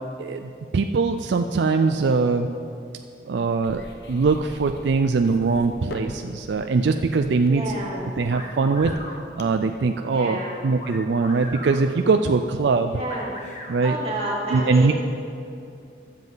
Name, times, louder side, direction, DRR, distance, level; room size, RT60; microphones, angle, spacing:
voice 1, 0.2-2.5 3.3-7.6 8.2-9.0 9.4-10.4 10.6-13.0 13.7-14.0 14.5-14.9, right 4 dB, 80° right, 6 dB, 0.4 m, -22 dB
sound 1, 3.6-9.7, left 1 dB, 65° left, 0.9 m, -42 dB
voice 2, 7.5-8.1 10.1-10.7 12.9-13.4 13.8-14.9, right 1 dB, 35° right, -5 dB, 2.6 m, -30 dB
sound 2, 8.3-9.2 10.8-11.8 13.1-13.8, left 1 dB, 40° left, 1.5 m, -38 dB
20.5 x 7.4 x 4.0 m, 2.5 s
head